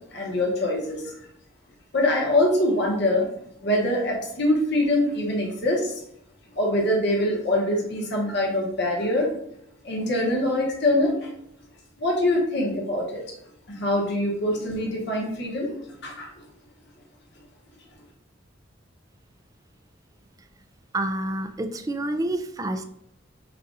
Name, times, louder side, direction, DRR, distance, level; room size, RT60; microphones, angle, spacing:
voice 1, 0.1-1.1 1.9-3.3 3.6-5.9 6.6-9.3 9.8-11.3 12.0-13.2 13.7-15.7 16.0-16.3, left 1 dB, 60° left, -1 dB, 1.1 m, -24 dB
voice 2, 20.9-22.8, right 1 dB, 20° right, 7 dB, 0.3 m, -28 dB
6.6 x 2.4 x 2.6 m, 0.74 s
head